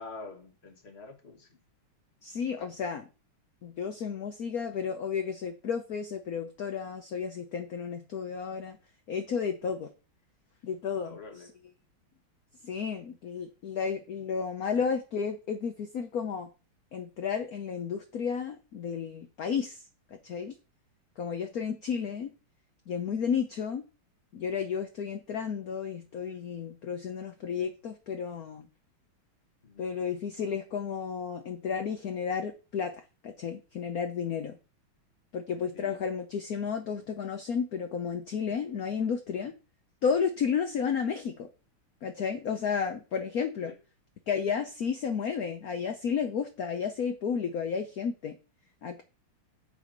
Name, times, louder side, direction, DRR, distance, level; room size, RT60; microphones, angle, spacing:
voice 1, 0.0-1.5 4.1-4.2 11.0-11.5 14.7-14.9 29.6-29.9 35.7-36.1 43.6-43.8, left 3 dB, 35° left, 1.4 m, -46 dB
voice 2, 2.2-3.1 3.6-8.8 9.1-9.9 10.6-11.2 12.6-16.5 16.9-19.8 20.2-20.6 21.2-22.3 22.9-23.8 24.3-28.7 29.8-32.9 33.2-34.6 35.3-39.5 40.0-41.5 42.0-43.7 44.3-48.4 48.8-49.0, left 6 dB, 55° left, 1.1 m, -32 dB
8.4 x 4.9 x 5.2 m
omnidirectional pair, 2.3 m